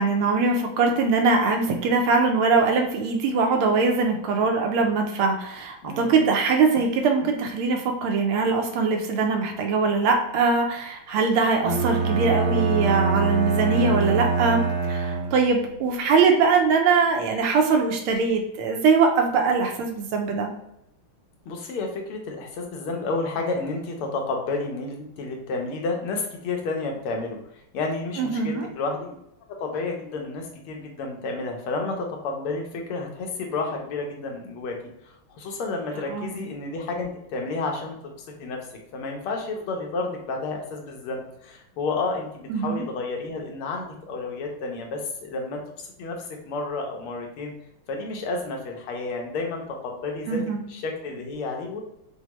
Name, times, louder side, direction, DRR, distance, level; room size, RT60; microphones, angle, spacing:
voice 1, 0.0-20.5 28.2-28.7 36.1-36.4 42.5-42.8 50.3-50.6, right 4 dB, 85° right, 3 dB, 1.6 m, -22 dB
voice 2, 5.8-6.3 21.5-27.4 27.7-29.2 29.6-34.8 35.0-38.0 38.4-38.6 38.9-47.5 47.9-50.4 50.7-51.8, left 3 dB, 90° left, 1 dB, 1.7 m, -31 dB
Bowed string instrument, 11.6-15.6, right 4 dB, 65° right, 1.4 m, -24 dB
5.6 x 2.1 x 3.0 m, 0.80 s
omnidirectional pair, 2.3 m